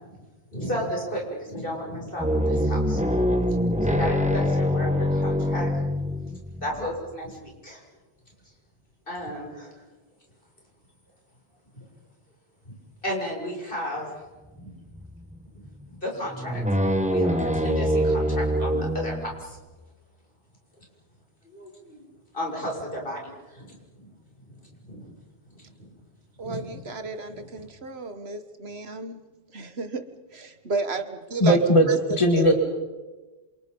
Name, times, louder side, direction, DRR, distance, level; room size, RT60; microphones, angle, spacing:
voice 1, 0.5-5.7 6.2-6.3 6.6-7.8 9.1-9.7 13.0-14.1 14.6-14.7 15.5-16.6 17.1-19.6 21.4-22.0 22.3-24.1 24.5-24.6 24.9-25.1 25.5-25.9 26.4-26.8 27.3-27.4, equal, 60° left, -1 dB, 7.1 m, -34 dB
sound 1, 2.2-7.2 14.7-15.4 15.7-15.8 16.3-19.7, equal, 5° right, 1.5 m, -25 dB
voice 2, 26.4-29.2 29.5-31.6 31.9-32.5, right 3 dB, 80° right, 9 dB, 1.8 m, -32 dB
voice 3, 31.4-32.5, equal, 30° left, 3 dB, 2.2 m, -19 dB
28.5 x 28.0 x 5.5 m, 1.2 s
omnidirectional pair, 1.0 m